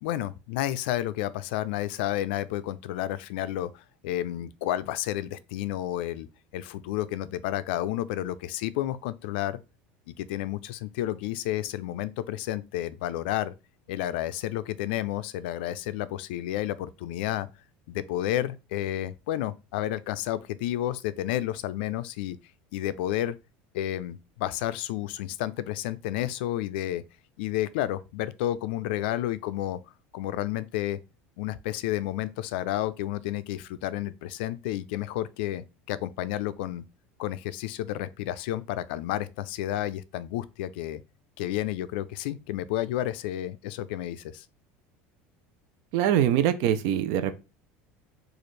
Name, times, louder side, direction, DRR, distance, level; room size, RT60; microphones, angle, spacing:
voice 1, 0.0-6.3 6.5-9.6 10.1-13.5 13.9-17.5 17.9-22.4 22.7-23.4 23.7-27.0 27.4-29.8 30.1-31.0 31.4-36.8 37.2-41.0 41.4-44.4, left 13 dB, 85° left, 0.3 m, -31 dB
voice 2, 45.9-47.3, right 10 dB, 65° right, 0.5 m, -23 dB
3.2 x 2.4 x 4.1 m
cardioid pair, 145°, 5 cm